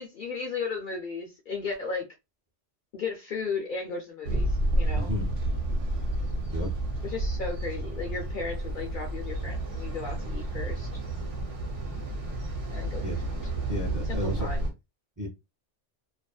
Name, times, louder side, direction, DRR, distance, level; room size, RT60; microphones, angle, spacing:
voice 1, 0.0-2.0 2.9-5.1 7.0-10.9 12.7-13.0 14.1-14.6, left 4 dB, 55° left, 0.6 m, -35 dB
sound 1, 4.2-14.7, right 1 dB, 90° right, 1.1 m, -30 dB
voice 2, 4.9-5.3 6.5-6.7 13.0-13.1 13.7-14.5 15.2-15.3, equal, 20° right, 0.5 m, -32 dB
2.7 x 2.4 x 2.3 m
omnidirectional pair, 1.2 m